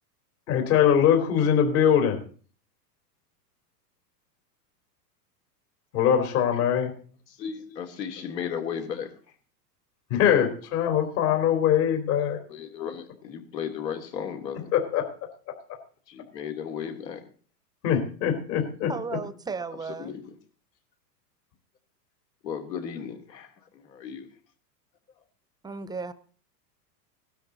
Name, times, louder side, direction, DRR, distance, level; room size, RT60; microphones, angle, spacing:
voice 1, 0.5-2.2 5.9-6.9 10.1-12.4 14.7-15.8 17.8-18.9, left 9 dB, 60° left, 3.9 m, -23 dB
voice 2, 7.4-9.3 12.5-14.7 16.1-17.2 20.0-20.3 22.4-24.3, left 7 dB, 80° left, 3.2 m, -35 dB
voice 3, 18.9-20.1 25.6-26.1, right 4 dB, 10° right, 0.7 m, -34 dB
17.5 x 12.5 x 4.1 m
hypercardioid pair, 110°, 50 cm